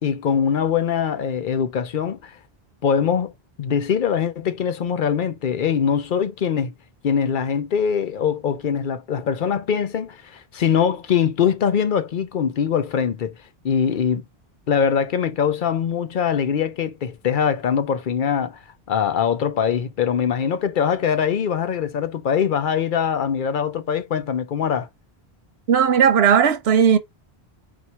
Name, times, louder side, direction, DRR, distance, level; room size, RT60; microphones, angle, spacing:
voice 1, 0.0-2.3 2.8-3.3 3.6-6.7 7.0-13.3 13.6-14.2 14.7-18.6 18.9-24.9, left 7 dB, 60° left, 0.8 m, -22 dB
voice 2, 25.7-27.0, right 7 dB, 80° right, 1.0 m, -16 dB
4.2 x 2.7 x 4.3 m
omnidirectional pair, 1.0 m